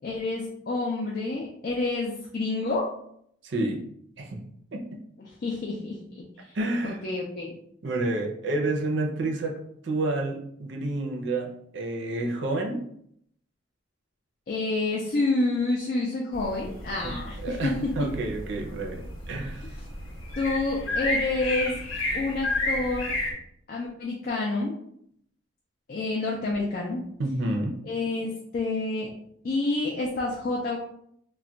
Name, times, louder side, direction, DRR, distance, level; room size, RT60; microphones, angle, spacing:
voice 1, 0.0-2.9 5.2-6.5 6.8-7.5 14.5-17.7 20.4-21.8 22.1-23.1 23.7-24.7 25.9-27.0 27.8-29.1 29.4-30.8, left 2 dB, 45° left, -3 dB, 0.4 m, -28 dB
voice 2, 3.4-3.8 4.2-4.4 4.7-5.0 6.5-7.0 7.8-12.8 17.0-17.1 17.4-19.7 27.2-27.8, right 2 dB, 65° right, 1 dB, 0.5 m, -29 dB
sound 1, 16.3-23.3, left 2 dB, 80° left, 0.9 m, -32 dB
2.2 x 2.1 x 3.8 m, 0.69 s
head